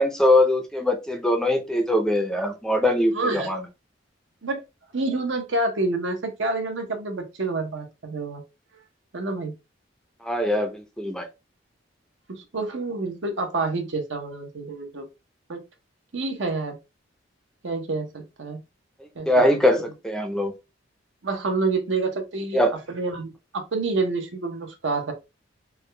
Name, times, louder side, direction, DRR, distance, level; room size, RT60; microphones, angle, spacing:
voice 1, 0.0-3.6 10.2-11.3 19.3-20.5 22.5-22.7, left 1 dB, 5° left, 0.5 m, -22 dB
voice 2, 3.1-3.5 4.4-4.6 4.9-8.4 9.1-9.5 12.3-15.0 15.5-15.6 16.1-16.8 17.6-18.6 19.2-19.8 21.2-22.6 22.9-25.1, right 3 dB, 70° right, 0.8 m, -28 dB
3.5 x 2.2 x 3.2 m
head